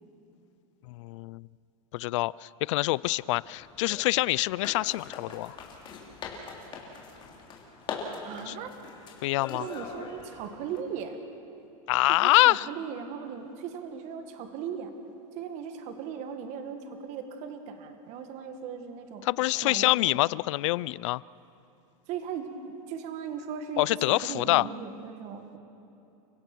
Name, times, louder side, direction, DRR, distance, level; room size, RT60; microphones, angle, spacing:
voice 1, 0.9-1.5 1.9-5.6 8.5-8.6 9.2-9.7 11.9-12.7 19.2-21.2 23.8-24.7, left 19 dB, 60° left, 22 dB, 0.4 m, -25 dB
sound 1, 2.9-10.8, left 5 dB, 25° left, 3.3 m, -42 dB
voice 2, 8.2-8.7 9.5-11.2 12.2-14.9 15.4-19.2 19.6-20.1 22.1-22.5 22.9-25.6, right 7 dB, 40° right, 7 dB, 1.8 m, -38 dB
29.5 x 16.0 x 6.1 m, 2.8 s
supercardioid pair, 150°, 18 cm